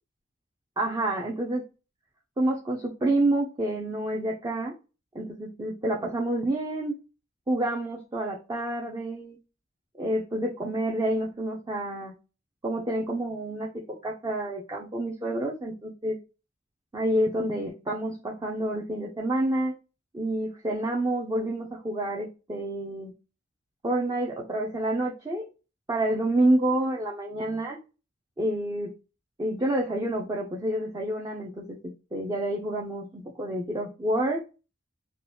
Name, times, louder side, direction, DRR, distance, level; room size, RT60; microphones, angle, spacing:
voice 1, 0.8-1.6 2.4-4.8 5.1-6.9 7.5-9.4 10.0-12.1 12.6-16.2 16.9-19.7 20.1-23.1 23.8-25.5 25.9-27.8 28.4-28.9 29.4-34.4, right 1 dB, 20° right, 0.4 m, -28 dB
2.8 x 2.2 x 3.2 m
head